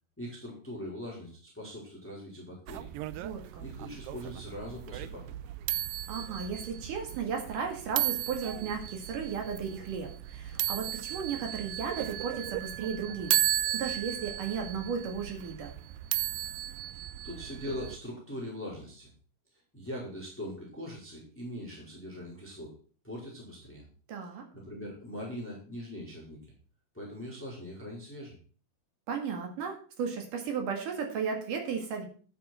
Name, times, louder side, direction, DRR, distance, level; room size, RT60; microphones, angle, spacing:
voice 1, 0.2-2.9 3.6-5.3 17.2-19.1 19.7-22.7 23.0-23.8 24.5-26.4 26.9-28.4, left 1 dB, 5° left, -3 dB, 4.1 m, -41 dB
sound 1, 2.7-18.0, right 14 dB, 85° right, 2.3 m, -35 dB
voice 2, 3.2-3.6 6.1-15.7 24.1-24.4 29.1-32.1, right 6 dB, 65° right, 3 dB, 3.5 m, -35 dB
11.5 x 8.5 x 4.4 m, 0.40 s
omnidirectional pair, 4.0 m